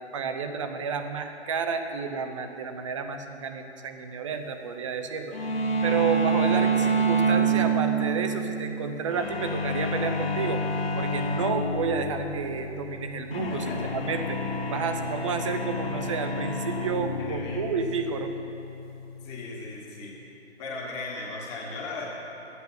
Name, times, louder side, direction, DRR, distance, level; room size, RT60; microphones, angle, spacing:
voice 1, 0.1-5.4 5.8-10.6 11.0-14.4 14.7-18.3, right 5 dB, 30° right, 7 dB, 0.7 m, -31 dB
sound 1, 5.3-19.8, right 2 dB, 60° left, 1.7 m, -28 dB
voice 2, 13.5-13.9 17.2-17.6 19.2-20.1 20.6-22.1, left 3 dB, 20° left, -3 dB, 1.6 m, -37 dB
11.5 x 8.4 x 6.0 m, 2.9 s
figure-of-eight pair, 140°, 34 cm